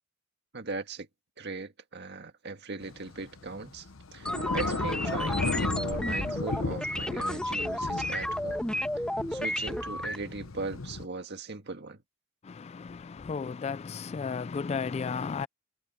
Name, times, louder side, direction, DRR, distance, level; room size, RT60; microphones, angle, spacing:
voice 1, 0.5-1.1 1.4-8.7 9.3-12.0, right 3 dB, 55° right, 1.8 m, -39 dB
Thunder / Rain, 2.8-11.1, left 3 dB, 85° left, 0.9 m, -35 dB
sound 1, 4.3-10.2, left 1 dB, 5° left, 1.2 m, -32 dB
voice 2, 12.4-15.5, left 5 dB, 30° left, 0.3 m, -34 dB
head